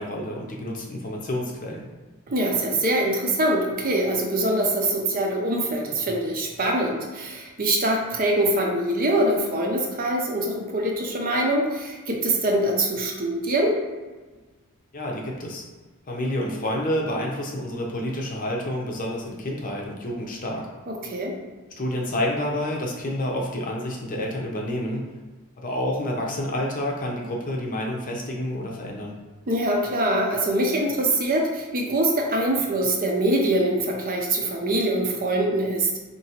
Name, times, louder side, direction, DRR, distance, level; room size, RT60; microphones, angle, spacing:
voice 1, 0.0-1.9 14.9-15.6 16.1-20.7 21.8-25.1 25.6-29.2, left 1 dB, 35° left, -1 dB, 0.7 m, -29 dB
voice 2, 2.3-13.8 20.9-21.3 29.5-36.0, right 1 dB, 40° right, 0 dB, 0.6 m, -24 dB
4.4 x 2.9 x 2.8 m, 1.3 s
head